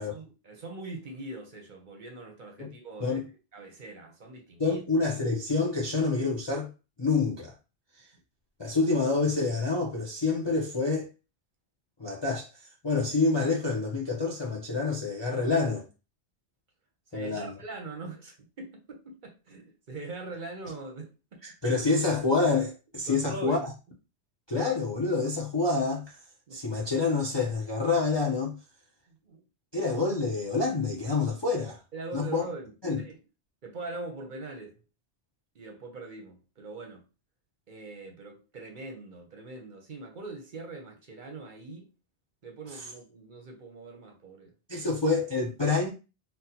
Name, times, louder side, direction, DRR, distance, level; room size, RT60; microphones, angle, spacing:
voice 1, 0.0-3.2 3.5-4.8 17.1-21.4 23.0-23.7 24.5-24.7 26.5-26.6 29.1-29.4 31.9-33.2 33.6-34.8 35.5-37.0 37.7-41.9 42.4-44.9, right 3 dB, 50° right, 0.8 m, -42 dB
voice 2, 4.6-6.7 7.0-7.5 8.6-11.1 12.0-12.5 12.8-15.9 17.1-17.5 21.4-23.7 24.5-26.2 26.5-28.6 29.7-31.8 32.1-32.4 32.8-33.0 44.7-45.9, left 3 dB, 35° left, 0.4 m, -27 dB
4.0 x 2.1 x 2.8 m
omnidirectional pair, 1.2 m